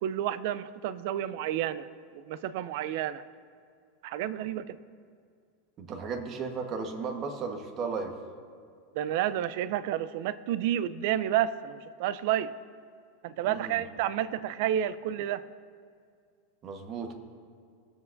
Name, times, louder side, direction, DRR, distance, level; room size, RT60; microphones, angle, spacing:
voice 1, 0.0-1.9 2.3-3.2 4.0-4.8 8.9-12.5 13.2-15.4, right 11 dB, 60° right, 15 dB, 0.5 m, -30 dB
voice 2, 5.8-8.2 13.4-13.8 16.6-17.1, right 5 dB, 35° right, 4 dB, 1.3 m, -35 dB
20.0 x 7.8 x 2.6 m, 2.2 s
supercardioid pair, 140°, 0 cm